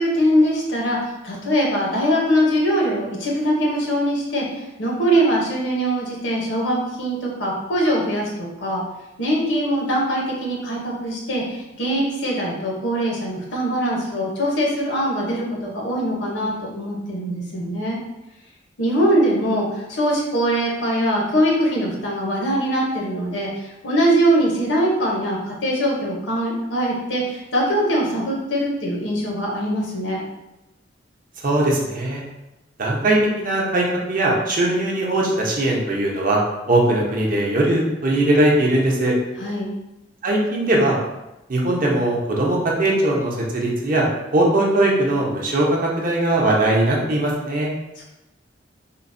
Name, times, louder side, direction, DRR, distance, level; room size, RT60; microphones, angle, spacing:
voice 1, 0.0-8.3 8.6-8.8 9.2-18.0 18.8-30.2 39.4-39.7, equal, 80° left, -2 dB, 0.8 m, -22 dB
voice 2, 31.4-32.2 32.8-36.4 36.7-39.1 40.2-41.0 41.5-44.1 44.3-47.7, right 1 dB, 50° right, -2 dB, 0.6 m, -20 dB
3.7 x 2.0 x 2.5 m, 0.95 s
head